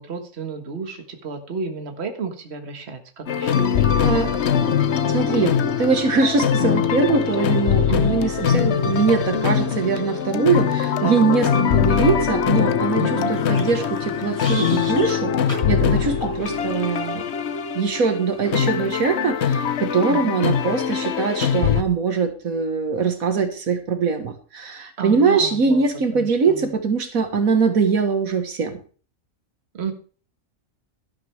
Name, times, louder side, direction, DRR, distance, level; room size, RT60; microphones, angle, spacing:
voice 1, 0.0-3.9 7.9-8.6 11.0-11.6 13.0-13.3 20.1-20.4 25.0-25.9 26.1-26.7 29.7-29.9, right 6 dB, 50° right, 6 dB, 1.7 m, -32 dB
sound 1, 3.3-21.8, left 8 dB, 60° left, 1.0 m, -22 dB
sound 2, 3.7-18.8, right 2 dB, 25° right, 2.6 m, -35 dB
voice 2, 5.1-13.0 13.3-15.3 15.7-17.2 17.8-28.8, right 5 dB, 75° right, 7 dB, 1.9 m, -22 dB
sound 3, 13.3-15.2 15.5-15.7 16.2-16.4, equal, 10° left, 6.0 m, -35 dB
12.5 x 11.5 x 3.4 m, 0.40 s
omnidirectional pair, 1.5 m